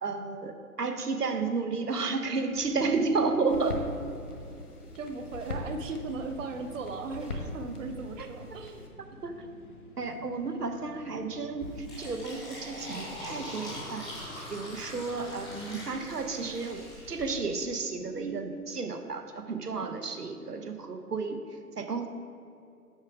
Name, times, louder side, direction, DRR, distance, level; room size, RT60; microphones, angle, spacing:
voice 1, 0.0-3.8 8.2-8.3 9.2-9.5 10.0-14.1 14.5-22.1, right 4 dB, 85° right, 6 dB, 0.8 m, -32 dB
sound 1, 2.5-11.8, left 1 dB, 35° left, 0.6 m, -51 dB
sound 2, 3.5-8.9, left 2 dB, 80° left, 1.5 m, -41 dB
voice 2, 4.8-8.9 19.8-19.9, right 3 dB, 55° right, 6 dB, 0.8 m, -37 dB
Fill (with liquid), 11.6-17.3, left 1 dB, ahead, 0.7 m, -42 dB
8.3 x 4.8 x 4.9 m, 2.7 s
figure-of-eight pair, 130°, 46 cm